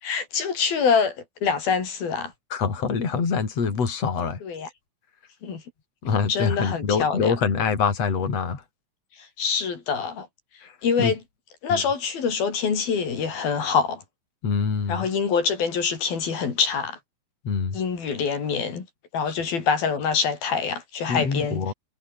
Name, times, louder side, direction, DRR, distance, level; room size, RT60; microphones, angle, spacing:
voice 1, 0.0-2.3 4.4-4.7 5.4-5.6 6.3-7.4 9.2-10.3 10.8-11.2 11.6-14.0 14.9-17.0 17.7-18.9 19.1-21.6, left 6 dB, 85° left, 6.3 m, -25 dB
voice 2, 2.5-4.4 6.0-8.6 10.6-11.1 11.7-11.8 14.4-15.1 17.4-17.8 19.3-19.5 21.1-21.7, left 5 dB, 45° left, 5.1 m, -25 dB
omnidirectional pair, 4.1 m